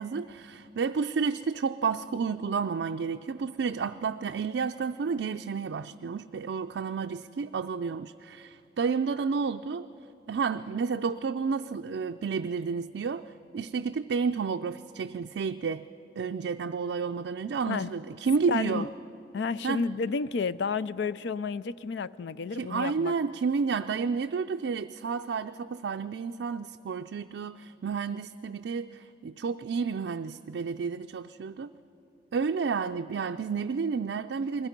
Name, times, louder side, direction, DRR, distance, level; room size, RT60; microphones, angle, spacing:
voice 1, 0.0-9.9 10.3-15.9 16.2-18.9 19.6-19.8 22.5-31.7 32.3-34.7, right 5 dB, 80° right, 6 dB, 0.4 m, -31 dB
voice 2, 18.5-18.9 19.3-23.1, left 5 dB, 80° left, 17 dB, 0.4 m, -31 dB
29.0 x 21.0 x 5.2 m, 2.8 s
head